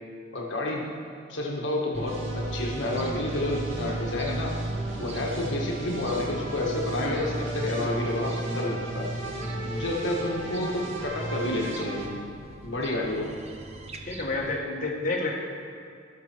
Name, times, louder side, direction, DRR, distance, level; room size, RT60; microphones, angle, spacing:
voice 1, 0.3-0.9 1.3-4.6 5.0-9.1 9.6-12.1 12.6-13.3, left 1 dB, 65° left, -2 dB, 1.4 m, -30 dB
sound 1, 1.9-14.6, right 1 dB, 35° right, 0.7 m, -36 dB
sound 2, 2.1-12.1, right 2 dB, 75° right, 2.0 m, -37 dB
voice 2, 14.0-15.3, left 2 dB, 40° left, -3 dB, 1.5 m, -30 dB
18.0 x 6.3 x 4.5 m, 2.4 s
head